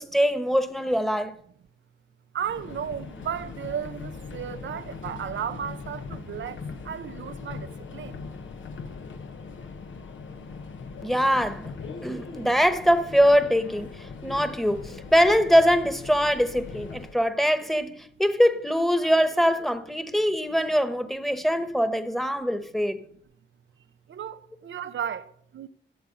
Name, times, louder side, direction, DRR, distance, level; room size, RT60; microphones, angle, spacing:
voice 1, 0.0-1.3 11.0-11.7 12.0-23.0, equal, ahead, 1.2 m, -23 dB
voice 2, 2.3-8.2 12.0-12.1 14.1-14.2 24.1-25.7, right 8 dB, 80° right, 0.6 m, -34 dB
Subway metro underground, 2.4-17.2, left 4 dB, 85° left, 1.1 m, -40 dB
13.5 x 8.2 x 5.4 m
cardioid pair, 70°, 19 cm